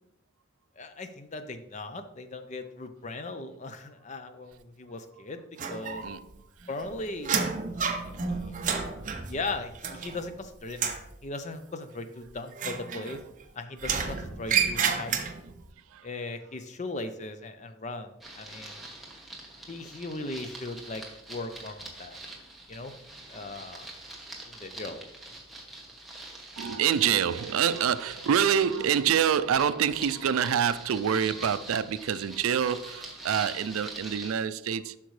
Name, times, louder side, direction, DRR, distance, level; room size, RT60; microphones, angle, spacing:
voice 1, 0.8-5.4 5.7-6.0 6.7-7.4 7.8-8.5 9.3-13.2 13.5-15.2 16.0-18.8 19.7-22.2 22.7-22.9 23.3-23.9 24.5-25.1, left 2 dB, 35° left, 0.5 m, -38 dB
sound 1, 5.6-6.3 6.6-10.4 10.7-11.1 12.5-13.4 13.8-15.6, right 6 dB, 35° right, 0.7 m, -30 dB
voice 2, 6.0-6.7 15.9-16.1 26.6-35.0, right 8 dB, 80° right, 0.4 m, -26 dB
sound 2, 18.2-34.3, right 2 dB, ahead, 1.0 m, -44 dB
8.0 x 5.9 x 3.2 m
head